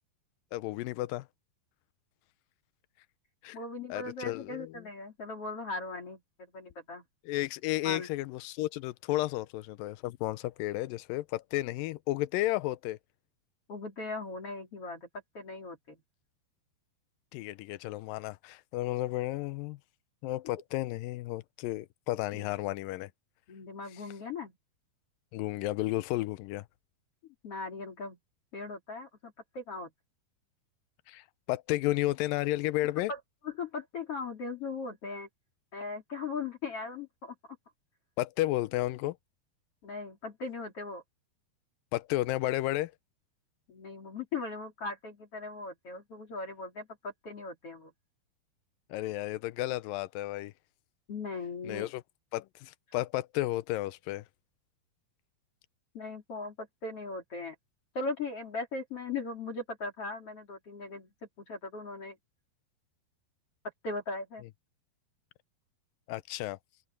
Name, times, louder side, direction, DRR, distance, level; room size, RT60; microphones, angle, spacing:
voice 1, 0.5-1.3 3.4-3.6 3.9-4.7 7.3-13.0 17.3-19.8 20.2-23.1 25.3-26.7 31.1-33.1 38.2-39.2 41.9-42.9 48.9-50.5 51.6-52.0 52.3-54.2 66.1-66.6, left 17 dB, 90° left, 2.0 m, -32 dB
voice 2, 3.5-7.0 7.8-8.1 13.7-15.1 15.3-16.0 22.3-22.5 23.5-24.6 27.4-28.2 28.5-29.9 33.1-35.3 35.7-37.3 39.8-41.0 43.7-47.9 51.1-51.9 55.9-57.6 58.0-61.1 61.4-62.2 63.8-64.4, left 3 dB, 40° left, 3.6 m, -39 dB
omnidirectional pair, 4.7 m